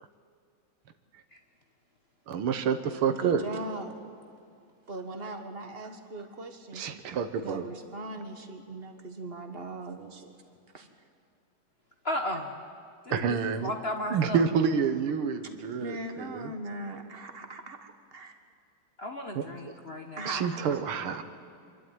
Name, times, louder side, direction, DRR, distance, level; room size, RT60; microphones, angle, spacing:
voice 1, 2.3-3.4 6.7-7.7 13.1-13.7 14.1-16.5 19.4-19.5 20.3-21.2, right 6 dB, 80° right, 9 dB, 2.0 m, -28 dB
voice 2, 3.1-3.9 4.9-10.3 10.7-10.9 14.1-14.2 15.8-18.3 20.2-21.2, right 2 dB, 30° right, 6 dB, 1.5 m, -40 dB
voice 3, 12.0-12.5 13.0-14.4 19.0-20.3, left 1 dB, 35° left, 3 dB, 1.1 m, -34 dB
27.0 x 12.0 x 9.4 m, 2.3 s
omnidirectional pair, 2.3 m